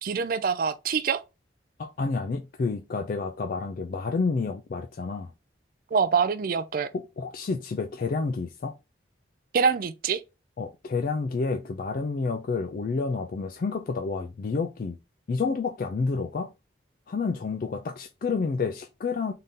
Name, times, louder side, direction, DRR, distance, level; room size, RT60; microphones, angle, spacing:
voice 1, 0.0-1.2 5.9-6.9 9.5-10.2, right 6 dB, 50° right, 0.4 m, -25 dB
voice 2, 1.8-5.3 6.9-8.7 10.6-15.0 15.3-16.5 17.1-19.3, left 4 dB, 50° left, 0.3 m, -29 dB
3.8 x 2.7 x 3.5 m
head